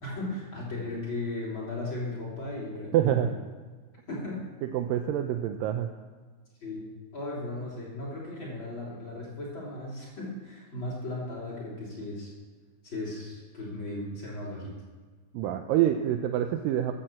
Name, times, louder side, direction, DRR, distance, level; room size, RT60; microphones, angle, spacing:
voice 1, 0.0-3.3 4.1-4.4 6.6-12.3 12.8-14.8, left 2 dB, 35° left, -4 dB, 3.8 m, -36 dB
voice 2, 2.9-3.4 4.7-5.9 15.3-16.9, right 11 dB, 80° right, 6 dB, 2.3 m, -26 dB
13.5 x 7.5 x 7.5 m, 1.5 s
omnidirectional pair, 4.0 m